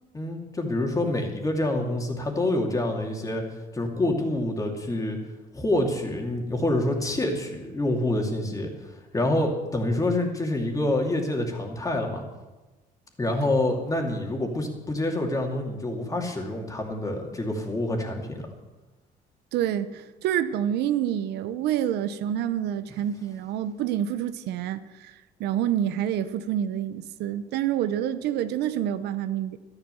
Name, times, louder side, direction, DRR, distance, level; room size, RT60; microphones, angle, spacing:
voice 1, 0.1-3.4 3.7-5.2 5.5-12.2 13.2-18.5, left 1 dB, 20° left, 2 dB, 2.7 m, -27 dB
voice 2, 19.5-29.6, right 10 dB, 80° right, 12 dB, 0.8 m, -28 dB
12.5 x 11.0 x 7.0 m, 1.1 s
cardioid pair, 110°, 17 cm